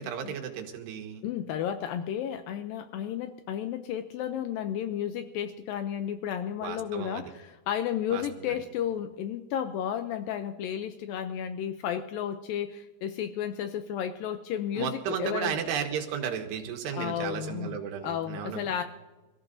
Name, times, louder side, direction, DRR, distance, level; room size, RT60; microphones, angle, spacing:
voice 1, 0.0-1.2 6.6-7.3 8.1-8.5 14.8-18.8, right 8 dB, 85° right, 4 dB, 3.5 m, -34 dB
voice 2, 1.2-15.6 16.9-18.8, left 9 dB, 85° left, 9 dB, 2.0 m, -33 dB
27.0 x 14.5 x 2.6 m, 1.2 s
omnidirectional pair, 4.7 m